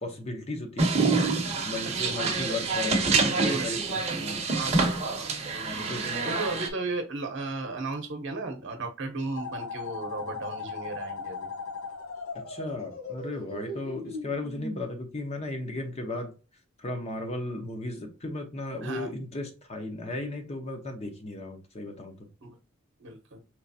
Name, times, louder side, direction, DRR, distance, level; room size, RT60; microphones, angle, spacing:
voice 1, 0.0-1.1 1.6-4.5 5.6-6.4 12.3-16.3 16.8-22.3, left 2 dB, 30° left, 0.8 m, -36 dB
sound 1, 0.8-6.7, right 3 dB, 30° right, 0.8 m, -27 dB
voice 2, 3.2-4.0 4.6-11.5 18.8-19.1 22.4-22.6 23.0-23.4, right 3 dB, 60° right, 0.9 m, -35 dB
sound 2, 9.3-14.8, left 3 dB, 75° left, 1.0 m, -38 dB
4.7 x 3.1 x 2.7 m
head